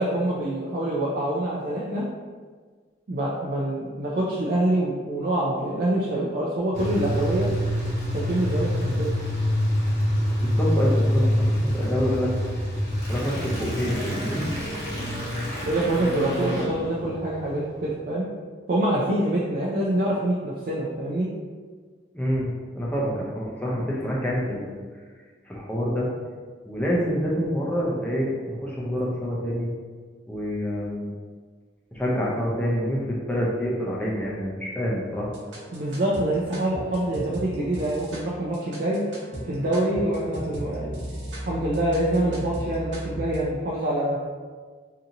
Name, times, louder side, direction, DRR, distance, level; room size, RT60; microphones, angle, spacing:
voice 1, 0.0-2.1 3.1-7.5 8.1-9.1 15.6-18.3 18.7-21.3 35.7-39.0 39.5-41.0 41.4-44.2, right 1 dB, 50° right, -5 dB, 0.4 m, -25 dB
sound 1, 6.7-17.9, equal, 60° left, 0.9 m, -26 dB
voice 2, 10.4-12.3 13.1-14.4 22.1-22.5 22.8-24.8 25.5-26.1 26.7-29.7 30.3-31.1 31.9-35.3, equal, 10° left, -5 dB, 0.5 m, -27 dB
sound 2, 35.1-43.4, right 1 dB, 75° right, 0.8 m, -37 dB
2.8 x 2.6 x 2.5 m, 1.5 s
head